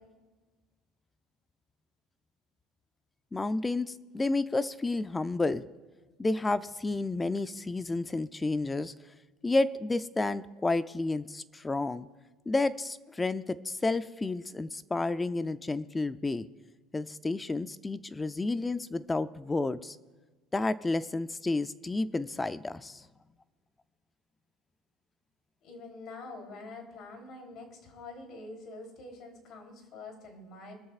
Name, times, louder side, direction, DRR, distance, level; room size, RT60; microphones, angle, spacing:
voice 1, 3.3-5.6 6.2-8.9 9.4-12.1 12.5-16.5 16.9-20.0 20.5-23.1, left 2 dB, 15° left, 13 dB, 0.4 m, -31 dB
voice 2, 25.6-30.7, left 3 dB, 50° left, 2 dB, 3.4 m, -46 dB
22.5 x 13.5 x 2.4 m, 1.3 s
cardioid pair, 130°, 0 cm